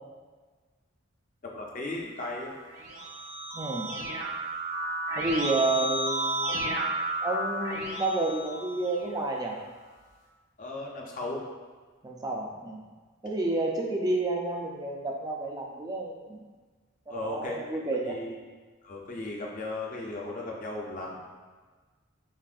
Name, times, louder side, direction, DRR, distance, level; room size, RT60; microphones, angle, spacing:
voice 1, 1.4-2.6 10.6-11.4 17.1-17.6 18.0-18.4 18.8-21.3, left 2 dB, 40° left, -2 dB, 0.6 m, -36 dB
Keyboard (musical), 2.6-9.2, right 1 dB, 75° right, 1.3 m, -32 dB
voice 2, 3.5-3.9 5.2-6.6 7.2-9.6 12.0-12.8 13.2-16.4 17.1-18.1, right 2 dB, 20° right, 0 dB, 0.4 m, -30 dB
7.2 x 2.5 x 2.5 m, 1.4 s
head